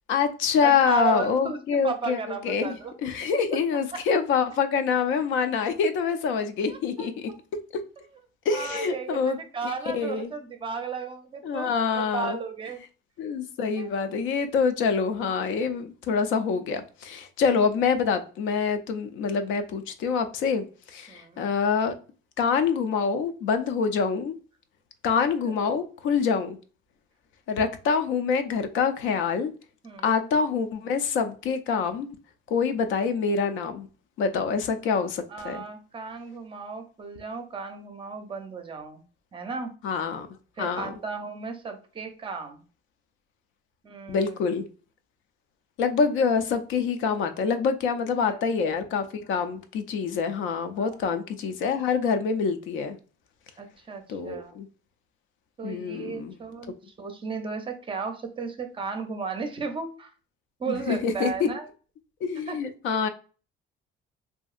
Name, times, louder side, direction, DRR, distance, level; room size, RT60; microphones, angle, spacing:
voice 1, 0.1-2.2 2.4-2.7 3.0-7.1 8.5-9.4 9.6-10.3 11.4-12.4 13.2-20.7 20.9-21.9 22.4-24.3 25.0-26.6 27.5-29.5 30.0-32.1 32.5-33.9 34.2-35.6 39.8-40.3 40.6-40.9 44.1-44.6 45.8-53.0 54.1-54.7 55.6-56.4 60.7-61.5 62.2-63.1, left 5 dB, 75° left, 0.5 m, -26 dB
voice 2, 0.6-2.9 3.9-4.0 6.7-7.1 8.5-12.8 13.8-13.9 21.1-21.5 29.8-30.2 35.3-39.0 39.3-39.7 40.6-42.6 43.8-44.4 48.3-48.7 50.8-51.1 53.6-54.5 55.6-60.1 60.6-61.7 62.5-62.6, right 4 dB, 25° right, 0.5 m, -34 dB
2.8 x 2.6 x 2.4 m
cardioid pair, 145°, 20 cm